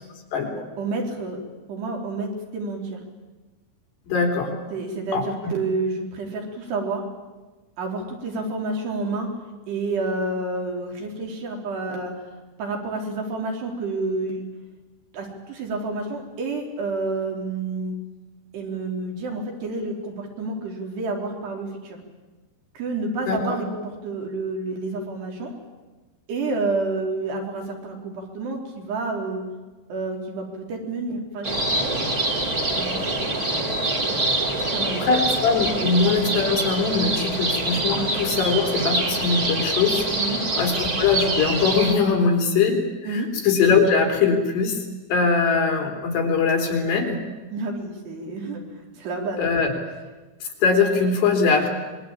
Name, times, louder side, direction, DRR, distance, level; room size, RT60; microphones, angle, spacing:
voice 1, 0.8-1.4 1.7-3.0 4.7-7.1 7.8-9.3 9.7-12.3 12.6-14.5 15.1-18.0 18.5-22.0 22.8-25.5 26.3-29.4 29.9-31.8 32.1-32.2 32.7-33.7 34.0-35.1 35.8-35.9 38.0-38.1 40.2-40.4 43.1-43.3 47.5-48.6 49.0-49.4, right 3 dB, 65° right, 1 dB, 5.5 m, -29 dB
voice 2, 4.1-4.5 5.1-5.3 23.3-23.6 34.9-40.1 40.5-44.8 45.1-47.2 49.4-49.7 50.4-51.7, left 5 dB, 70° left, 3 dB, 5.6 m, -21 dB
sound 1, 31.4-41.9, right 2 dB, 25° right, 2.7 m, -25 dB
25.5 x 22.0 x 8.8 m, 1.2 s
omnidirectional pair, 5.1 m